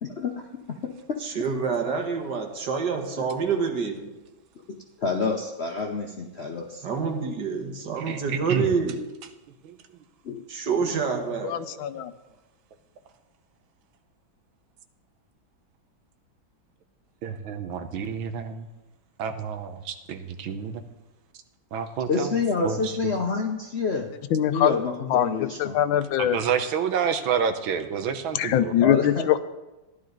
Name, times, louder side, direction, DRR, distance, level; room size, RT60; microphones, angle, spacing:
voice 1, 0.0-1.2 3.2-3.3 4.7-6.8 10.2-10.4 22.1-24.1 24.5-25.8 28.8-29.3, left 4 dB, 55° left, 1 dB, 0.7 m, -28 dB
voice 2, 1.2-4.1 6.8-9.1 10.5-11.6, right 5 dB, 60° right, 3 dB, 1.9 m, -27 dB
voice 3, 8.0-8.7 9.6-9.7 17.2-18.7 19.2-20.8 21.7-22.3 22.6-22.9 26.2-28.7, right 7 dB, 85° right, 8 dB, 1.7 m, -29 dB
voice 4, 11.4-12.1 24.3-24.7 25.1-26.4 28.3-29.4, left 11 dB, 85° left, 12 dB, 1.4 m, -23 dB
14.5 x 11.0 x 3.9 m, 1.1 s
omnidirectional pair, 2.2 m